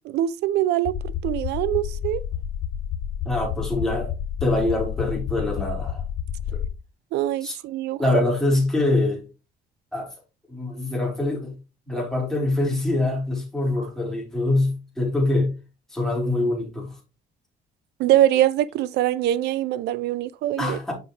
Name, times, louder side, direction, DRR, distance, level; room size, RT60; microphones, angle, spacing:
voice 1, 0.0-2.2 7.1-8.0 18.0-20.8, right 13 dB, 80° right, 0.6 m, -23 dB
sound 1, 0.8-6.7, left 9 dB, 75° left, 1.0 m, -30 dB
voice 2, 3.3-4.1 4.4-6.0 6.5-6.6 7.4-7.6 8.0-9.2 9.9-10.1 10.5-11.5 11.9-15.5 15.9-16.9 20.6-20.9, left 2 dB, 5° left, 4.0 m, -24 dB
8.3 x 5.6 x 3.3 m
cardioid pair, 110°, 17 cm